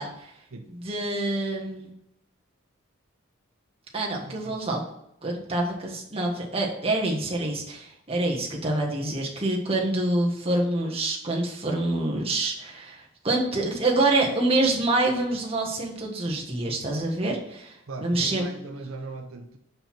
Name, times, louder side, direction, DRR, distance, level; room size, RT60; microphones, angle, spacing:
voice 1, 0.0-0.3 0.8-1.9 3.9-4.8 5.2-17.8 18.0-18.5, right 2 dB, 25° right, -1 dB, 1.4 m, -26 dB
voice 2, 4.2-4.6 17.9-19.6, right 3 dB, 75° right, 5 dB, 0.7 m, -39 dB
5.9 x 5.4 x 5.9 m, 0.77 s
head